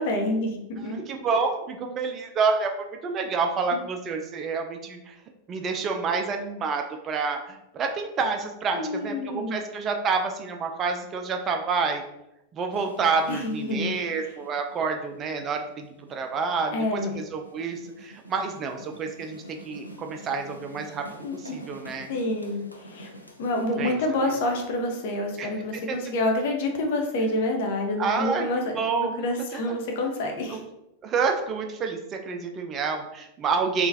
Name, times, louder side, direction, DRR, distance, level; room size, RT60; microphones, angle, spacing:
voice 1, 0.0-1.0 8.7-9.6 13.3-13.9 16.7-17.2 21.2-21.6 22.1-23.1 23.4-28.6 29.0-30.6, left 1 dB, 50° left, 2 dB, 0.7 m, -27 dB
voice 2, 0.9-5.2 5.5-12.0 12.5-21.1 21.3-22.1 23.7-24.4 25.4-26.0 28.0-28.5 28.8-29.2 29.5-29.8 30.5-30.7 31.0-33.9, right 4 dB, 30° right, 4 dB, 0.4 m, -28 dB
sound 1, 12.7-23.7, equal, 85° left, 0.4 m, -47 dB
3.6 x 2.4 x 2.7 m, 0.88 s
figure-of-eight pair, 90°, 0 cm